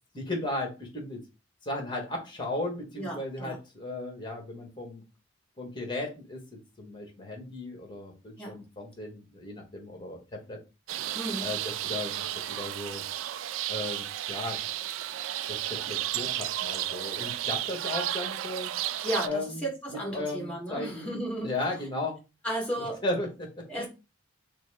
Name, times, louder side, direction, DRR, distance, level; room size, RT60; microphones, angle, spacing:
voice 1, 0.1-1.2 1.6-5.0 5.6-10.6 11.4-13.0 13.7-14.6 15.5-18.7 19.2-21.1 21.4-22.2 22.8-23.9, left 2 dB, 25° left, 1.3 m, -36 dB
voice 2, 3.0-3.5 8.4-8.6 11.1-11.5 19.0-21.5 22.4-23.0 23.7-23.9, right 1 dB, 5° left, 1.7 m, -33 dB
sound 1, 10.9-19.3, right 12 dB, 75° right, 0.3 m, -33 dB
5.8 x 2.0 x 3.5 m
head